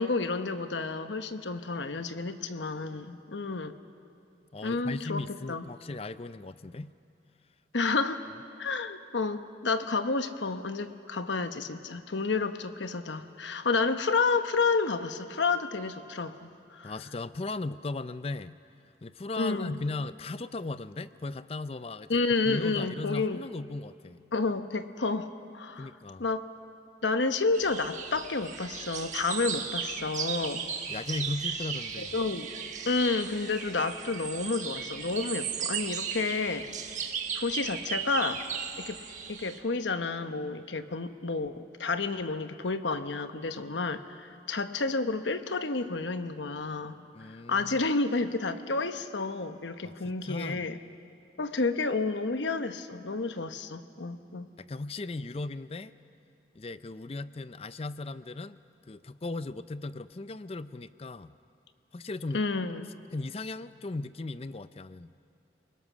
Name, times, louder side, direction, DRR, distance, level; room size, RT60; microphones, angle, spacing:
voice 1, 0.0-3.8 4.6-5.7 7.7-8.2 8.6-16.9 19.4-19.8 22.1-23.4 24.3-25.9 26.2-26.5 27.0-30.6 32.0-32.5 32.9-37.1 37.3-38.4 38.8-39.0 39.3-50.8 51.4-54.5 62.3-63.0, left 3 dB, 90° left, 9 dB, 1.0 m, -30 dB
voice 2, 4.5-6.9 16.8-18.6 19.0-24.3 25.8-26.2 30.9-32.1 47.1-47.8 49.8-50.6 54.6-55.9 56.5-58.6 58.9-61.3 61.9-62.4 63.1-65.1, left 2 dB, 35° left, 14 dB, 0.5 m, -37 dB
sound 1, 27.5-39.6, right 7 dB, 40° right, 1.4 m, -36 dB
29.0 x 20.5 x 6.2 m, 2.5 s
head